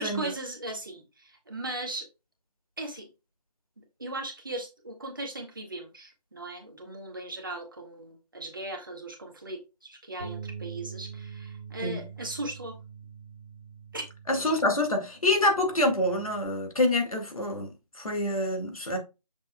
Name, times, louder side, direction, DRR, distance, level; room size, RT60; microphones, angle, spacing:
voice 1, 0.0-2.1 2.8-3.1 4.0-12.8 13.9-14.0, right 2 dB, 30° right, 1.4 m, -38 dB
Bass guitar, 10.2-16.4, right 6 dB, 10° right, 1.3 m, -44 dB
voice 2, 14.3-17.7 18.0-19.0, left 1 dB, 55° left, 1.9 m, -26 dB
6.8 x 6.5 x 2.2 m
figure-of-eight pair, 175°, 21 cm